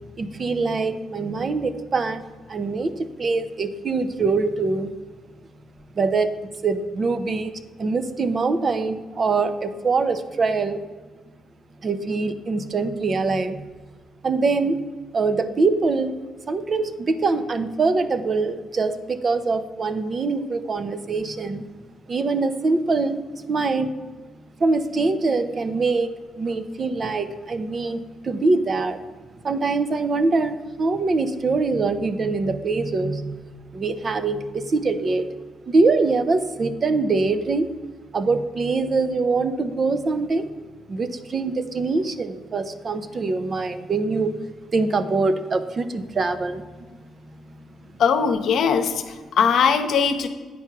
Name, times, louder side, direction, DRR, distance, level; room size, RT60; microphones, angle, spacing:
voice 1, 0.2-2.2 2.5-4.9 6.0-6.3 6.6-7.5 7.8-10.8 11.8-13.7 14.2-14.8 15.1-16.2 16.5-21.6 22.1-23.2 23.5-24.0 24.6-29.0 29.4-35.3 35.7-37.7 38.1-40.5 40.9-44.4 44.7-46.9 47.5-47.6, right 3 dB, 40° right, 11 dB, 0.6 m, -23 dB
voice 2, 48.0-50.3, left 6 dB, 70° left, 6 dB, 0.8 m, -20 dB
9.3 x 4.5 x 5.9 m, 1.4 s
cardioid pair, 90°, 0 cm